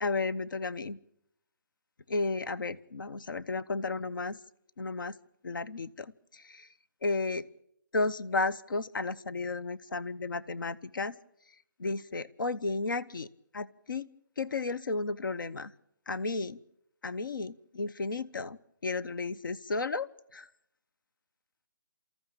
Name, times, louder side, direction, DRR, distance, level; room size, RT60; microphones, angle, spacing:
voice 1, 0.0-1.0 2.1-4.4 4.8-5.2 5.4-6.7 7.0-7.5 7.9-11.2 11.8-13.3 13.5-14.1 14.4-15.7 16.1-16.6 17.0-20.5, left 3 dB, 70° left, 14 dB, 1.0 m, -33 dB
29.5 x 14.0 x 8.9 m, 0.79 s
hypercardioid pair, 180°, 11 cm